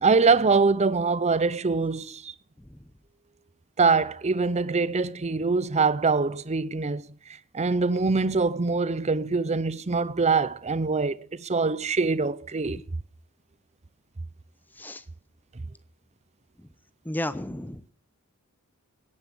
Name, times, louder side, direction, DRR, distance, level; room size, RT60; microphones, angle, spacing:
voice 1, 0.0-2.3 3.8-7.1 7.5-12.8, right 4 dB, 30° right, 0.7 m, -24 dB
voice 2, 17.0-17.8, left 1 dB, 10° left, 0.7 m, -34 dB
18.0 x 9.7 x 6.6 m
head